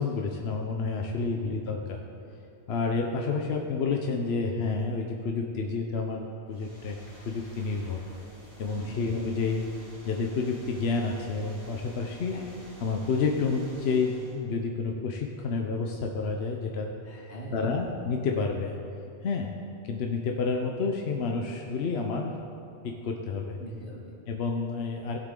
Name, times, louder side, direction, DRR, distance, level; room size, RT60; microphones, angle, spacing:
voice 1, 0.0-2.0 2.7-7.0 7.2-8.0 8.6-9.6 10.0-12.4 12.8-16.9 17.5-18.8 19.2-19.5 19.8-22.3 22.8-23.6 24.3-25.2, left 4 dB, 70° left, 2 dB, 1.0 m, -29 dB
sound 1, 6.5-14.4, equal, 30° left, 2.0 m, -51 dB
voice 2, 17.0-17.8 23.6-24.1, right 1 dB, 85° left, -1 dB, 1.9 m, -42 dB
17.0 x 7.6 x 3.8 m, 2.6 s
omnidirectional pair, 1.1 m